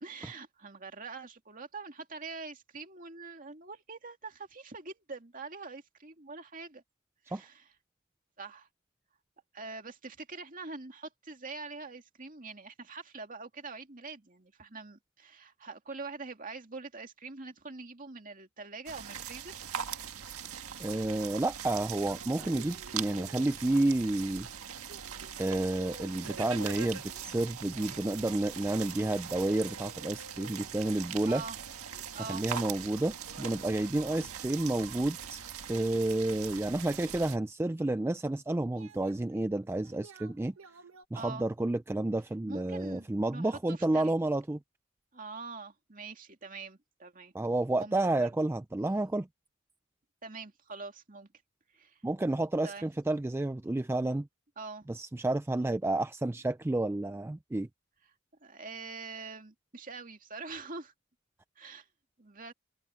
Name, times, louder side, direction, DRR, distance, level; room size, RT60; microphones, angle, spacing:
voice 1, 0.0-6.8 7.3-7.7 8.4-8.7 9.5-19.5 27.7-28.1 31.3-31.6 32.1-32.5 41.1-41.4 42.4-44.1 45.1-47.3 47.8-48.3 50.2-51.3 51.7-52.0 52.6-52.9 54.6-54.9 58.4-60.9 61.6-61.9 62.2-62.5, right 4 dB, 40° right, 2.4 m, -44 dB
sound 1, 18.9-37.4, right 8 dB, 90° right, 1.7 m, -42 dB
voice 2, 20.8-24.5 25.4-31.4 32.3-35.4 35.7-40.5 41.1-44.6 47.3-49.3 52.0-54.3 54.9-57.7, right 2 dB, 10° right, 0.3 m, -30 dB
sound 2, 22.0-23.7 24.4-24.5 24.9-27.3 27.7-33.0 33.3-35.6 38.7-41.1, right 4 dB, 70° right, 1.4 m, -50 dB
open air
head